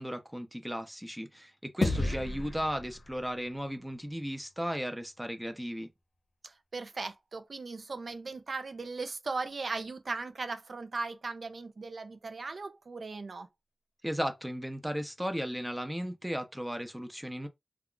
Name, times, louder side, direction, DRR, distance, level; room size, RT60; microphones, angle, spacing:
voice 1, 0.0-5.9 14.0-17.5, equal, 5° right, 0.6 m, -35 dB
sound 1, 1.8-4.4, left 2 dB, 75° left, 0.6 m, -34 dB
voice 2, 1.8-2.2 6.4-13.5, right 3 dB, 75° right, 0.5 m, -38 dB
2.3 x 2.2 x 3.7 m
cardioid pair, 50°, 0 cm